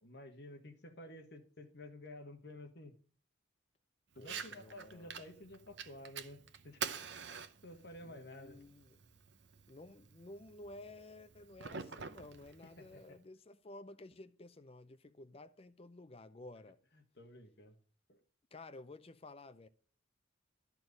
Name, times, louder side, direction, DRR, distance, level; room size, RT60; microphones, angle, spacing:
voice 1, 0.0-2.9 4.1-6.8 7.6-8.6 12.6-13.2 17.1-17.7 18.1-18.2, left 1 dB, 50° left, 1.5 m, -52 dB
voice 2, 4.2-5.2 8.0-9.0 9.7-16.8 18.5-19.7, left 2 dB, 30° left, 0.5 m, -53 dB
Fire, 4.2-13.2, right 6 dB, 55° right, 0.8 m, -48 dB
12.5 x 4.6 x 6.5 m
head